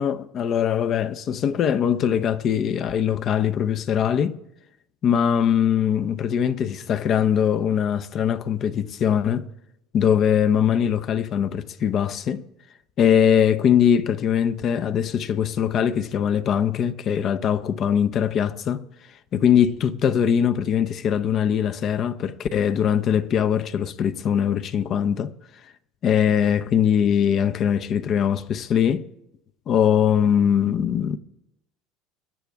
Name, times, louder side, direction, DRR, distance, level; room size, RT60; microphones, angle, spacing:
voice 1, 0.0-4.4 5.0-9.5 9.9-12.4 13.0-18.8 19.3-25.3 26.0-29.1 29.7-31.2, left 8 dB, 45° left, 0.7 m, -21 dB
22.5 x 10.5 x 3.5 m
supercardioid pair, 100°, 0 cm